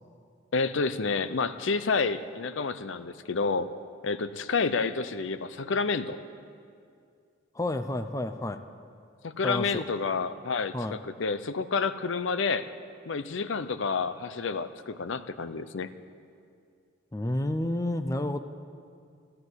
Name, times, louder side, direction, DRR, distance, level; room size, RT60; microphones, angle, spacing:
voice 1, 0.5-3.7 4.0-6.2 9.2-12.7 13.1-15.9, left 4 dB, 70° left, 13 dB, 0.6 m, -29 dB
voice 2, 7.5-8.6 9.4-9.8 10.7-11.0 17.1-18.4, left 1 dB, 15° left, 9 dB, 0.5 m, -30 dB
13.5 x 13.5 x 8.0 m, 2.4 s
head